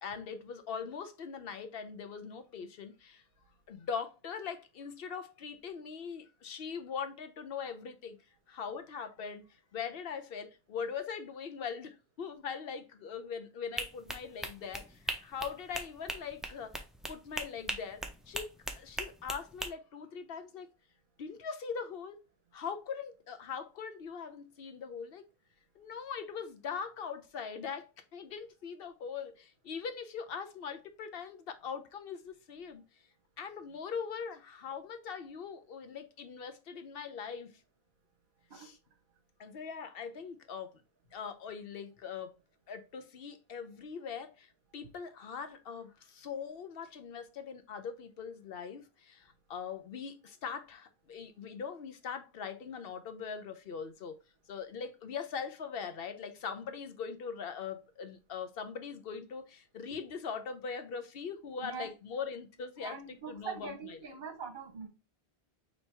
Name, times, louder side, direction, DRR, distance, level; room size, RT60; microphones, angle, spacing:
voice 1, 0.0-3.2 3.7-8.2 8.5-20.7 21.2-22.2 22.5-25.2 25.8-32.8 33.4-37.6 38.5-38.8 39.4-40.8 41.1-42.4 42.7-54.2 54.5-64.1, left 6 dB, 70° left, 0.9 m, -41 dB
sound 1, 13.8-19.7, right 1 dB, ahead, 0.3 m, -39 dB
voice 2, 62.8-64.9, right 6 dB, 55° right, 1.0 m, -42 dB
4.4 x 3.0 x 3.3 m
omnidirectional pair, 1.0 m